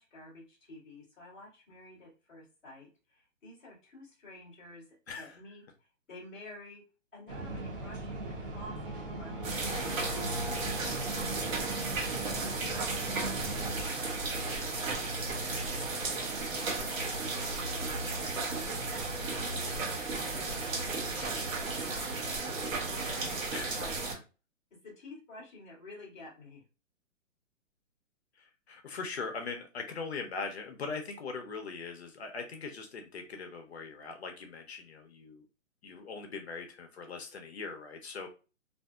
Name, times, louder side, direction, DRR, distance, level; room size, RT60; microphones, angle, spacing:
voice 1, 0.0-6.8 7.1-10.1 10.4-14.2 14.4-15.3 15.7-23.9 24.7-26.6, left 1 dB, ahead, -19 dB, 0.7 m, -51 dB
voice 2, 5.1-5.4 23.5-23.7 28.4-35.5 35.8-38.3, left 4 dB, 55° left, 4 dB, 0.6 m, -41 dB
sound 1, 7.3-13.8, right 2 dB, 45° right, 0.6 m, -39 dB
sound 2, 8.4-14.3, left 1 dB, 25° right, 1.4 m, -48 dB
sound 3, 9.4-24.1, right 3 dB, 80° right, 1.1 m, -34 dB
2.6 x 2.4 x 2.2 m, 0.32 s
hypercardioid pair, 175°, 39 cm